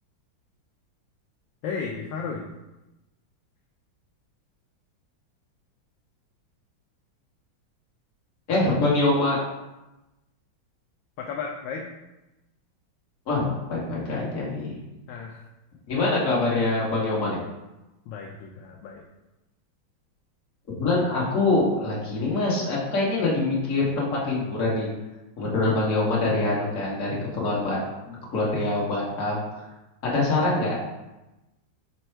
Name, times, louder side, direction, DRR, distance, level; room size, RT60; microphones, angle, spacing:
voice 1, 1.6-2.4 11.2-11.9 15.1-15.4 18.1-19.0, left 5 dB, 75° left, 0 dB, 1.2 m, -34 dB
voice 2, 8.5-9.4 13.3-14.7 15.9-17.4 20.8-24.9 25.4-27.8 28.0-29.6 30.0-30.7, left 2 dB, 45° left, -5 dB, 1.4 m, -24 dB
5.4 x 2.3 x 4.4 m, 1.0 s
omnidirectional pair, 2.2 m